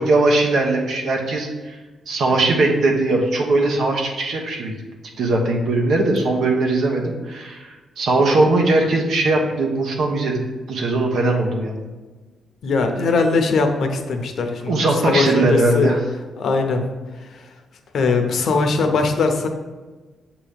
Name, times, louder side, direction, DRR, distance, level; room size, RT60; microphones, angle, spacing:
voice 1, 0.0-1.8 2.1-4.7 5.2-10.4 10.7-11.8 14.7-16.0, right 2 dB, 70° right, 1 dB, 1.1 m, -19 dB
voice 2, 12.6-15.9 16.4-16.9 17.3-17.5 17.9-19.5, left 4 dB, 60° left, 5 dB, 0.7 m, -20 dB
7.1 x 3.0 x 5.1 m, 1.3 s
wide cardioid pair, 150°, 0 cm